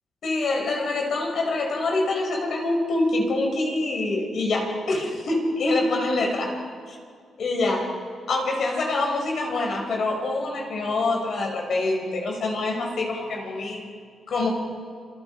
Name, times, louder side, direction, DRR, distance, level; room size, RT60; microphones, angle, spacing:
voice 1, 0.2-6.6 7.4-7.9 8.3-13.9 14.3-14.5, left 2 dB, 60° left, 1 dB, 5.7 m, -25 dB
28.5 x 27.5 x 5.0 m, 2.1 s
cardioid pair, 135°, 0 cm